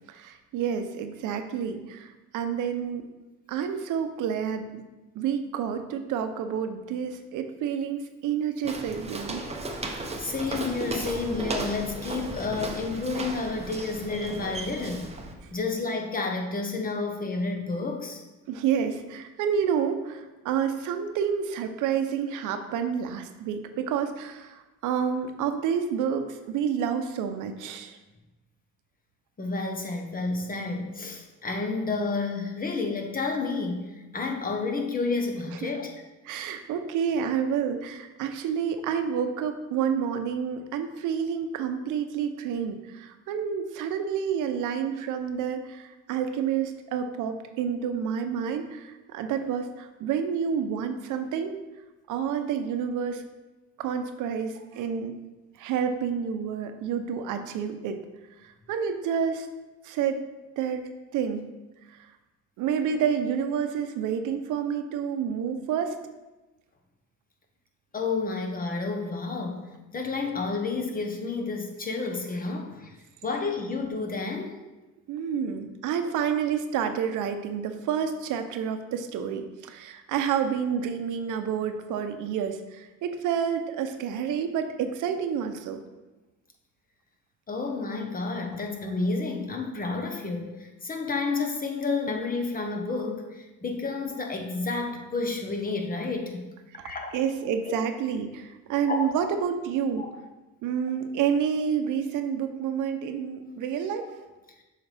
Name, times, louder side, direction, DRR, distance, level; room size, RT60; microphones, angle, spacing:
voice 1, 0.1-3.1 3.5-4.8 5.1-9.4 15.4-15.5 18.5-28.0 35.6-35.7 36.2-51.6 52.1-53.2 53.8-55.2 55.6-58.0 58.4-59.5 59.8-60.2 60.6-60.8 61.1-61.4 61.9-62.0 62.6-66.0 75.1-85.8 96.7-96.8 97.1-100.1 100.6-104.1, right 7 dB, 90° right, 7 dB, 0.7 m, -29 dB
Walk footsteps, 8.6-15.3, right 2 dB, 20° right, 0.8 m, -35 dB
voice 2, 10.2-15.1 15.5-18.2 29.4-35.9 67.9-72.9 73.2-74.5 87.5-96.5 96.8-97.1 97.7-97.8 98.9-99.1 100.0-100.1 103.5-103.6, left 3 dB, 30° left, 3 dB, 1.1 m, -30 dB
7.1 x 4.9 x 3.4 m, 1.1 s
cardioid pair, 90°, 30 cm